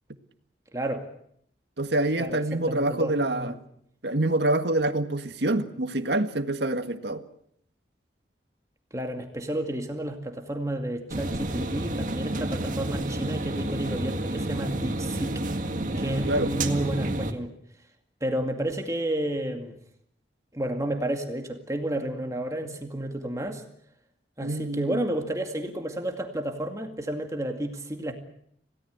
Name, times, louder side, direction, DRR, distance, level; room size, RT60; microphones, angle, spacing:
voice 1, 0.7-1.1 2.2-3.6 8.9-15.4 16.0-17.5 18.2-19.8 20.5-23.6 24.4-28.1, right 1 dB, 20° right, 4 dB, 2.2 m, -31 dB
voice 2, 1.8-3.5 4.0-7.2 16.2-16.5 24.4-25.0, right 1 dB, 70° right, 8 dB, 1.8 m, -26 dB
sound 1, 11.1-17.3, right 1 dB, 45° right, 1.9 m, -30 dB
27.5 x 17.5 x 8.1 m, 0.70 s
head